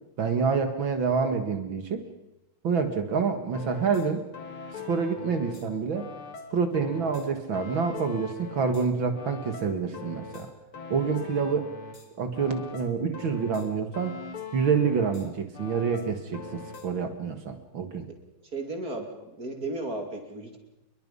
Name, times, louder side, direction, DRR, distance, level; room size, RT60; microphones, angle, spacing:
voice 1, 0.2-2.0 2.6-4.2 4.9-6.1 6.5-10.5 10.9-11.7 12.2-14.2 14.5-18.1, right 5 dB, 65° right, 7 dB, 2.6 m, -27 dB
sound 1, 3.5-5.7 5.9-8.9 9.1-12.1 12.3-15.3 15.5-16.9, left 4 dB, 80° left, 3.7 m, -42 dB
voice 2, 18.5-20.6, right 2 dB, 45° right, 4 dB, 3.3 m, -34 dB
28.0 x 22.5 x 5.5 m, 0.90 s
omnidirectional pair, 2.3 m